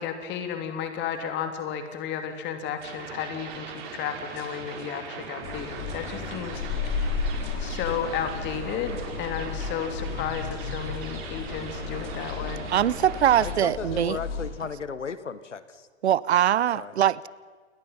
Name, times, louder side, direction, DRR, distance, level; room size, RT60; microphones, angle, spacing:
voice 1, 0.0-7.1 7.6-12.7, left 8 dB, 30° left, 3.4 m, -33 dB
sound 1, 2.8-13.5, right 6 dB, 45° right, 5.1 m, -40 dB
sound 2, 5.4-14.5, left 5 dB, 55° left, 5.1 m, -33 dB
voice 2, 12.7-14.2 16.0-17.3, right 11 dB, 65° right, 0.7 m, -22 dB
voice 3, 13.4-15.8 16.7-16.9, left 6 dB, 85° left, 1.5 m, -35 dB
29.5 x 22.0 x 5.7 m
figure-of-eight pair, 115°, 35 cm